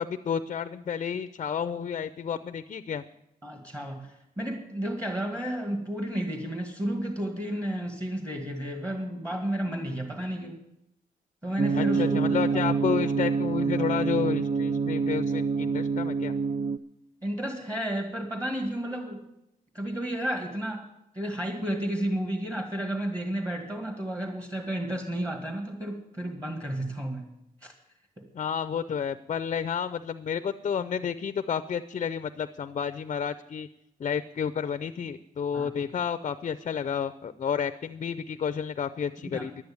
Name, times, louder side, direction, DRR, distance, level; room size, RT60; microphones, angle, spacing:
voice 1, 0.0-3.0 11.8-16.3 28.3-33.7 34.0-39.6, left 7 dB, 45° left, 12 dB, 0.5 m, -31 dB
voice 2, 3.4-10.6 11.4-12.2 12.5-12.7 17.2-19.2 19.7-20.9 21.1-27.3 27.6-27.7 28.2-28.3 35.5-35.7 39.2-39.5, right 1 dB, 20° right, 3 dB, 2.0 m, -32 dB
sound 1, 11.6-16.8, right 5 dB, 45° right, 0.6 m, -26 dB
11.0 x 9.5 x 8.7 m, 0.84 s
cardioid pair, 110°, 16 cm